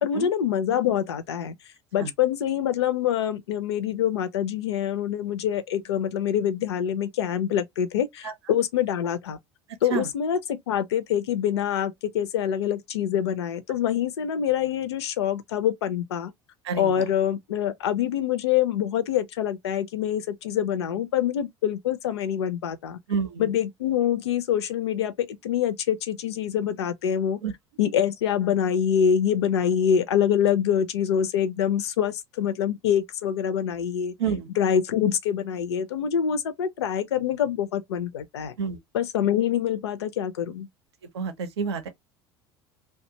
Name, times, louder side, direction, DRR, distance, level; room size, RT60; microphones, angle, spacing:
voice 1, 0.0-1.5 1.9-9.4 9.8-16.3 16.8-23.0 23.4-27.4 27.8-34.1 34.6-38.5 38.9-40.7, left 9 dB, 70° left, 0.5 m, -25 dB
voice 2, 16.6-17.1 23.1-23.5 27.4-27.5 34.2-34.5 38.6-38.8 41.1-41.9, right 6 dB, 70° right, 0.6 m, -29 dB
2.4 x 2.2 x 2.8 m
figure-of-eight pair, 70°, 15 cm